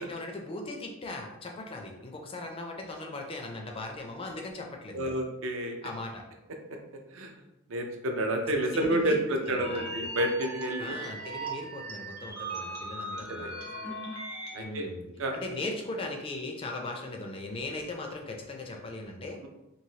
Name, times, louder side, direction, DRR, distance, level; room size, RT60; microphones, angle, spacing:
voice 1, 0.0-5.1 5.8-6.2 8.7-9.2 9.7-9.9 10.8-13.5 14.5-15.0 15.3-19.4, left 2 dB, 25° left, 2 dB, 0.3 m, -38 dB
voice 2, 4.9-5.8 6.9-7.3 7.7-11.0 13.1-13.5 13.8-13.9 14.5-14.9 15.2-15.3, right 1 dB, 60° right, 3 dB, 0.5 m, -30 dB
sound 1, 9.6-14.6, right 1 dB, 85° right, 1.0 m, -38 dB
3.0 x 2.6 x 2.7 m, 0.94 s
head